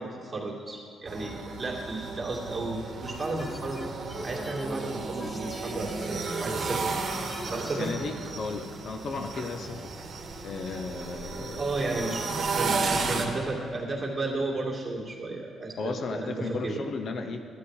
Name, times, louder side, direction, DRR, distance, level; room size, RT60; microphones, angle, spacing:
voice 1, 0.0-3.8 4.2-6.9 7.5-7.9 11.6-16.8, right 2 dB, 25° right, -3 dB, 2.4 m, -33 dB
sound 1, 1.1-13.3, right 4 dB, 50° right, 1.4 m, -34 dB
sound 2, 3.0-7.9, left 1 dB, 15° left, 0.5 m, -41 dB
voice 2, 7.7-9.9 10.4-11.6 15.8-17.4, left 4 dB, 55° left, 7 dB, 0.8 m, -34 dB
11.5 x 9.8 x 4.8 m, 2.2 s
cardioid pair, 90°, 0 cm